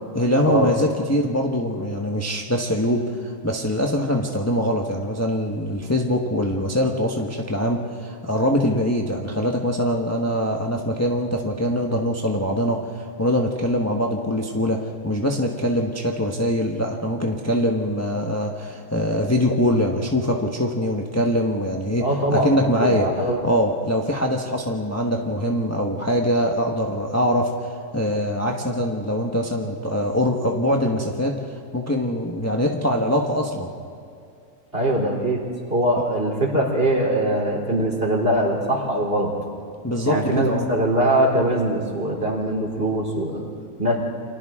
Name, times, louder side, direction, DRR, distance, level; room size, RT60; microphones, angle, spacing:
voice 1, 0.1-22.0 22.3-23.1 23.4-27.5 27.9-31.3 31.7-33.7 39.8-40.7, equal, 10° left, 0 dB, 1.2 m, -23 dB
voice 2, 22.0-23.4 34.7-35.4 35.7-39.3 40.0-43.5 43.8-44.0, right 1 dB, 40° right, -1 dB, 3.7 m, -22 dB
29.0 x 25.5 x 3.7 m, 2.4 s
omnidirectional pair, 1.6 m